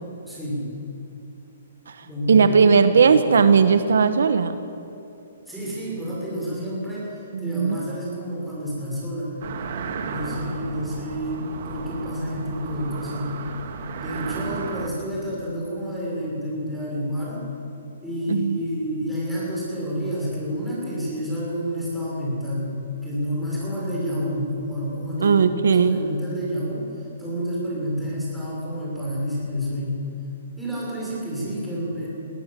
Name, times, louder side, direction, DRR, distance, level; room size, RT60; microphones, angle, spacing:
voice 1, 0.3-0.7 2.1-3.2 5.5-9.3 10.1-13.3 14.0-17.5 18.0-22.7 23.0-30.0 30.6-32.1, equal, ahead, -7 dB, 6.6 m, -29 dB
voice 2, 1.9-4.6 7.3-7.9 18.3-18.6 25.2-26.0, right 5 dB, 80° right, 10 dB, 1.2 m, -18 dB
sound 1, 9.4-14.9, right 5 dB, 50° right, 2.2 m, -34 dB
21.5 x 17.5 x 7.6 m, 2.7 s
hypercardioid pair, 165°, 0 cm